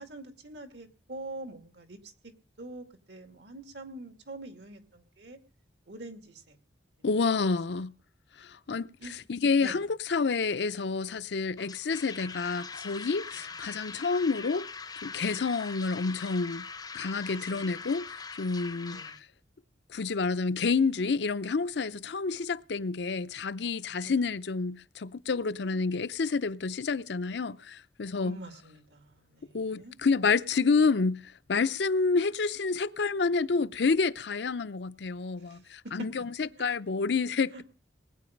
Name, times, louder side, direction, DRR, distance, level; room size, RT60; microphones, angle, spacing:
voice 1, 0.0-2.3 2.6-5.4 5.9-6.6 7.0-7.1 9.0-9.2 9.6-9.8 13.3-13.5 17.3-17.9 18.9-19.2 24.0-24.2 28.2-30.0 35.4-36.5 37.5-37.6, right 2 dB, 80° right, 2.4 m, -45 dB
voice 2, 7.0-7.9 8.4-8.9 9.3-14.7 15.0-16.7 16.9-18.0 18.4-19.0 19.9-28.4 29.5-36.3 36.6-37.6, left 4 dB, 75° left, 0.6 m, -29 dB
sound 1, 11.6-19.2, left 5 dB, 20° left, 0.6 m, -42 dB
20.0 x 9.4 x 5.2 m
head